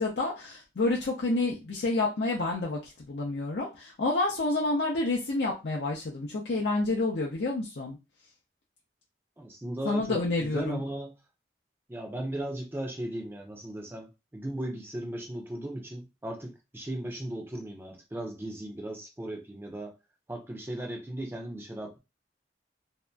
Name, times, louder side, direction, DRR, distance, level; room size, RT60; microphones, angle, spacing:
voice 1, 0.0-8.0 9.9-10.8, left 2 dB, 75° left, 0.5 m, -29 dB
voice 2, 9.4-11.1 11.9-19.9 20.3-22.0, right 1 dB, 15° right, 0.5 m, -37 dB
2.7 x 2.4 x 2.2 m
head